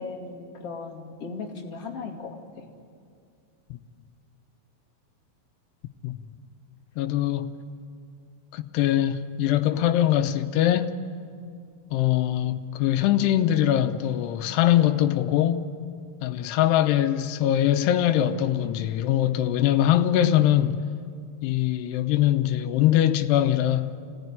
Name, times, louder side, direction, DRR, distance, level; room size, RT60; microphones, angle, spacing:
voice 1, 0.0-2.7, left 4 dB, 40° left, 3.0 m, -37 dB
voice 2, 7.0-7.6 8.5-11.0 11.9-15.7 16.2-20.8 21.4-23.9, left 12 dB, 85° left, 3.0 m, -22 dB
26.0 x 18.0 x 9.9 m
omnidirectional pair, 4.8 m